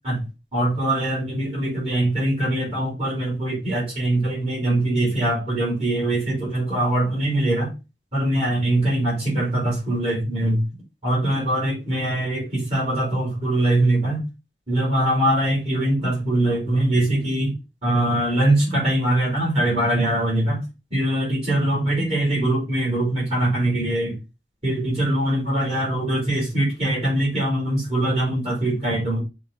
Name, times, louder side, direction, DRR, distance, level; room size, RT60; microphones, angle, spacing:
voice 1, 0.5-7.7 8.1-10.6 11.0-14.2 14.7-17.5 17.8-20.6 20.9-24.2 24.6-29.2, right 1 dB, 35° right, -6 dB, 4.0 m, -22 dB
6.4 x 2.9 x 5.3 m, 0.28 s
head